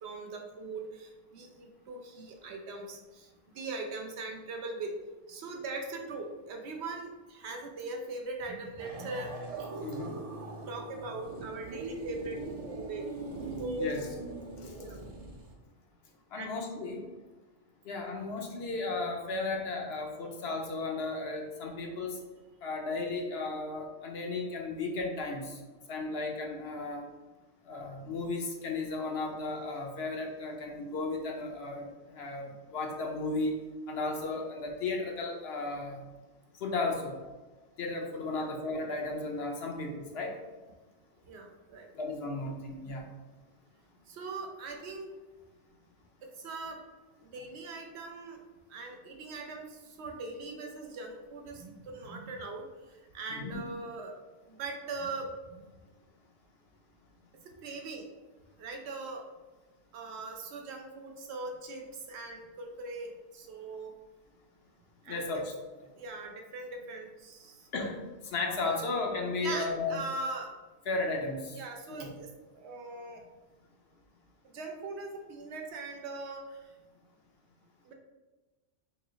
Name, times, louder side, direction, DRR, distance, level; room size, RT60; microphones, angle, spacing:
voice 1, 0.0-3.3 3.5-4.9 5.3-9.3 9.6-9.7 10.7-12.4 12.8-13.0 13.6-13.9 14.8-14.9 16.4-16.5 38.3-38.5 41.2-41.9 44.1-45.1 46.4-46.8 47.2-48.4 48.7-54.1 54.5-55.7 57.6-58.1 58.6-59.2 59.9-63.9 65.0-65.4 66.0-67.7 69.4-70.5 71.5-73.2 74.5-76.6 77.8-77.9, right 3 dB, 70° right, 3 dB, 0.9 m, -40 dB
sound 1, 8.8-15.5, right 2 dB, 40° right, 0.6 m, -41 dB
voice 2, 9.8-10.2 13.8-14.1 14.6-14.7 16.3-17.1 17.8-22.2 22.6-25.6 25.9-27.1 27.7-33.5 33.9-36.0 36.6-37.1 37.8-40.4 41.9-43.0 53.3-53.6 65.1-65.4 67.7-70.0 70.9-71.6 71.9-72.1, left 3 dB, 65° left, 1 dB, 0.8 m, -34 dB
3.1 x 2.8 x 3.9 m, 1.2 s
omnidirectional pair, 1.2 m